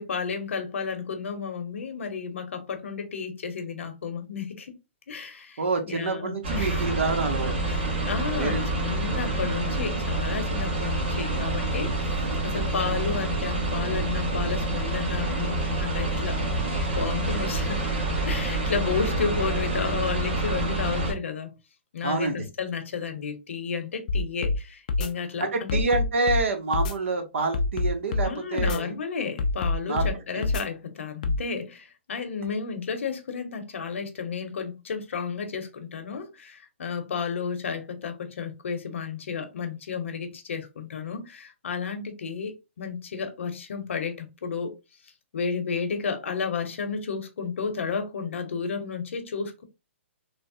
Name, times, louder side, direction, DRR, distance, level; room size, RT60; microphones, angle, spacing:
voice 1, 0.0-4.7 5.1-6.8 7.7-16.4 16.9-17.9 18.3-21.5 21.9-25.8 28.2-44.7 45.3-49.6, left 5 dB, 75° left, 0.8 m, -32 dB
voice 2, 5.6-7.7 8.4-8.6 22.0-22.5 25.4-29.0 29.9-30.1 30.3-30.5, right 3 dB, 70° right, 0.8 m, -27 dB
sound 1, 6.4-21.1, right 2 dB, 45° right, 1.1 m, -27 dB
sound 2, 24.1-24.6 24.9-25.1 25.7-26.4 26.7-26.9 27.5-28.3 28.6-28.8 29.4-30.1 30.4-30.6 31.2-31.4, left 3 dB, 35° left, 0.4 m, -25 dB
3.3 x 2.0 x 2.5 m
hypercardioid pair, 175°, 7 cm